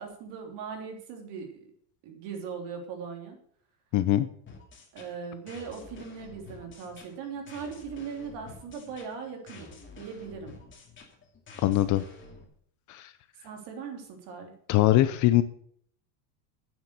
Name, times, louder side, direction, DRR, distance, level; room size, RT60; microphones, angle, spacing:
voice 1, 0.0-1.6 2.0-3.4 4.9-10.5 13.4-14.5, right 6 dB, 55° right, 3 dB, 3.3 m, -39 dB
voice 2, 3.9-4.3 11.6-12.0 12.9-13.1 14.7-15.4, left 14 dB, 40° left, 13 dB, 0.6 m, -22 dB
sound 1, 4.5-12.5, left 3 dB, 25° left, 2.4 m, -49 dB
9.4 x 7.5 x 6.5 m, 0.63 s
supercardioid pair, 150°, 49 cm